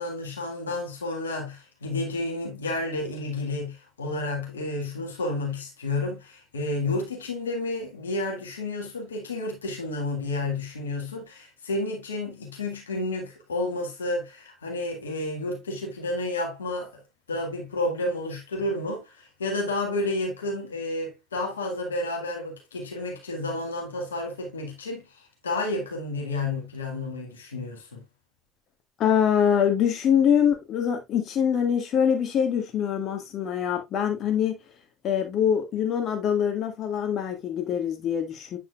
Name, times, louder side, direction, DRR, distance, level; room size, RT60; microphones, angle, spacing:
voice 1, 0.0-17.0 17.3-28.0, left 2 dB, 85° left, 1.8 m, -31 dB
voice 2, 29.0-34.6 35.0-38.6, left 8 dB, 55° left, 1.8 m, -24 dB
8.5 x 5.8 x 2.4 m
hypercardioid pair, 60°, 0 cm